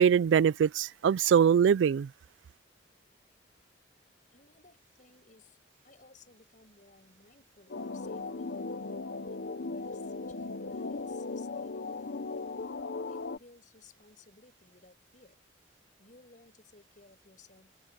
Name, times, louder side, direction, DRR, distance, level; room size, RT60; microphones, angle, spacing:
voice 1, 0.0-2.1, right 7 dB, 80° right, 0.3 m, -23 dB
voice 2, 4.3-5.6 5.8-8.6 9.1-12.3 12.7-15.4 16.0-17.7, left 3 dB, 45° left, 5.8 m, -59 dB
sound 1, 7.7-13.4, left 3 dB, 60° left, 0.7 m, -37 dB
head